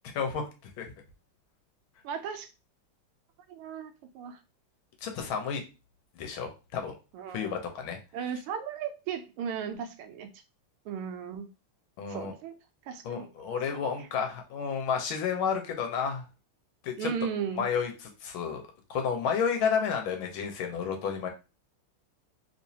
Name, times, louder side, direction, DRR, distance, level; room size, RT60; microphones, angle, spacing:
voice 1, 0.0-0.5 0.8-0.9 5.0-5.6 6.2-6.9 7.3-8.0 12.0-12.3 13.0-16.2 16.8-17.1 17.6-18.6 18.9-21.3, left 6 dB, 75° left, 4 dB, 1.5 m, -31 dB
voice 2, 2.0-2.5 3.5-4.4 7.1-7.5 8.1-10.3 10.9-11.5 12.1-12.5 12.9-13.3 13.7-13.8 17.0-17.7, right 7 dB, 90° right, 8 dB, 1.5 m, -36 dB
3.5 x 3.0 x 2.7 m, 0.30 s
omnidirectional pair, 2.4 m